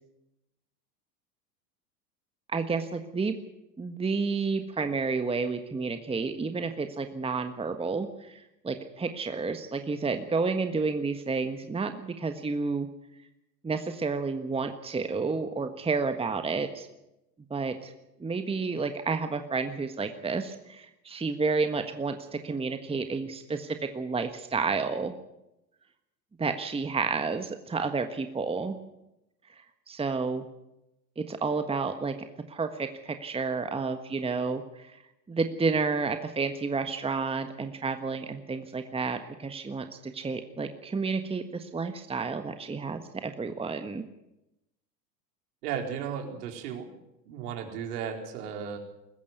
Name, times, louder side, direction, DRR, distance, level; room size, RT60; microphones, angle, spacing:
voice 1, 2.5-3.3 3.8-12.9 13.6-16.9 17.5-17.9 18.2-25.1 26.4-28.8 29.9-30.5 31.2-32.1 32.5-35.0 35.3-44.0, right 4 dB, 10° right, 8 dB, 1.5 m, -30 dB
voice 2, 45.6-46.9 47.3-48.8, right 7 dB, 65° right, 3 dB, 4.5 m, -35 dB
21.5 x 14.5 x 9.4 m, 0.89 s
hypercardioid pair, 95°, 49 cm